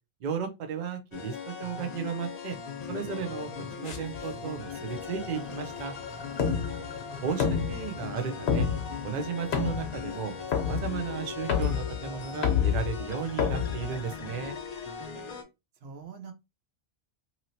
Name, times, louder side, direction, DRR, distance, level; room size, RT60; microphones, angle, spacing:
voice 1, 0.2-2.6 2.9-3.5 3.8-5.9 7.2-8.7 9.0-14.6, right 7 dB, 50° right, 6 dB, 0.7 m, -34 dB
sound 1, 1.1-15.4, left 6 dB, 45° left, 0.6 m, -39 dB
sound 2, 3.8-14.5, left 7 dB, 75° left, 1.0 m, -31 dB
voice 2, 6.8-7.3 15.8-16.3, right 5 dB, 75° right, 5 dB, 1.0 m, -45 dB
2.9 x 2.8 x 2.7 m, 0.24 s
omnidirectional pair, 1.1 m